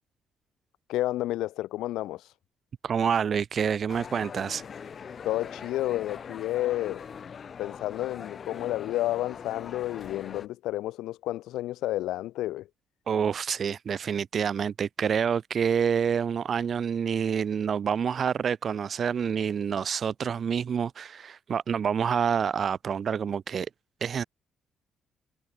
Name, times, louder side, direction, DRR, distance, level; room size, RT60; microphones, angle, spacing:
voice 1, 0.9-2.3 5.2-7.0 7.6-12.7, left 15 dB, 90° left, 1.0 m, -30 dB
voice 2, 2.8-4.6 13.1-23.7 24.0-24.2, right 7 dB, 50° right, 0.8 m, -27 dB
sound 1, 3.9-10.5, left 6 dB, 45° left, 2.9 m, -42 dB
cardioid pair, 90°, 0 cm